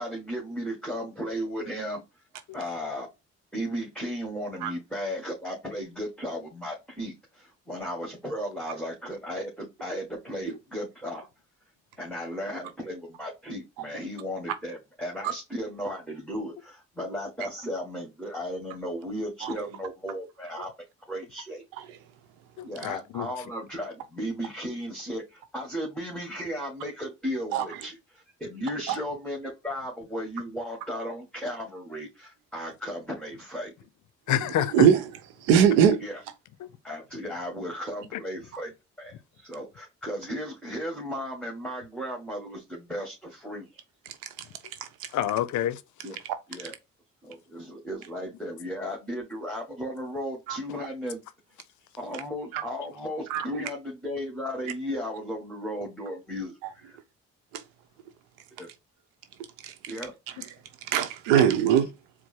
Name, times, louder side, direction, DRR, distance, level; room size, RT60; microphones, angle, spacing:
voice 1, 0.0-2.0 2.5-3.1 3.5-11.3 12.0-20.7 21.1-21.6 22.6-33.7 36.0-36.2 36.8-43.7 46.0-46.2 46.5-46.7 47.2-51.2 52.0-57.0 58.6-58.7 59.9-60.2, equal, 5° left, 1.6 m, -35 dB
voice 2, 22.6-23.3 34.3-34.9 38.1-38.2 45.1-45.8, left 12 dB, 60° left, 0.5 m, -27 dB
voice 3, 34.7-35.0 35.4-36.0 50.5-50.6 52.5-52.6 53.3-53.5 57.5-57.6 59.6-59.7 60.9-61.9, right 8 dB, 85° right, 0.7 m, -21 dB
4.5 x 2.0 x 4.4 m
hypercardioid pair, 55°, 33 cm